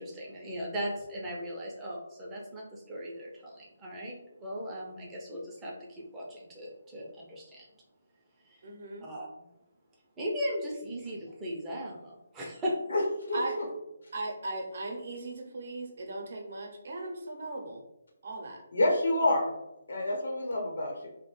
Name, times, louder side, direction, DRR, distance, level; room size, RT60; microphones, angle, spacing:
voice 1, 0.0-7.6 8.5-8.6 9.0-9.3 10.2-12.8, equal, 15° right, -4 dB, 0.5 m, -37 dB
voice 2, 8.6-9.1 13.3-13.5 14.1-17.8 18.2-18.6, right 2 dB, 55° right, 2 dB, 0.6 m, -38 dB
voice 3, 13.3-13.6 18.7-19.5 19.9-21.1, left 1 dB, 75° left, 0 dB, 0.9 m, -28 dB
2.3 x 2.1 x 3.0 m, 0.91 s
hypercardioid pair, 160°, 0 cm